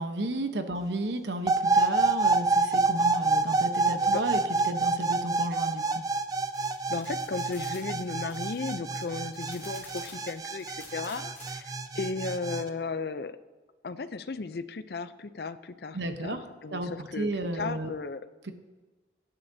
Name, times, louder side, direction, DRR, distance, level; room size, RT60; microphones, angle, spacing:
voice 1, 0.0-6.0 15.9-16.4 16.7-17.9 18.4-18.5, right 1 dB, 70° right, 7 dB, 0.9 m, -33 dB
sound 1, 1.5-12.6, right 3 dB, 20° right, 0.3 m, -27 dB
sound 2, 6.4-11.5, left 3 dB, 15° left, 3.5 m, -50 dB
voice 2, 6.9-13.4 13.8-18.3, left 4 dB, 55° left, 13 dB, 0.5 m, -35 dB
17.0 x 9.9 x 2.7 m, 1.3 s
head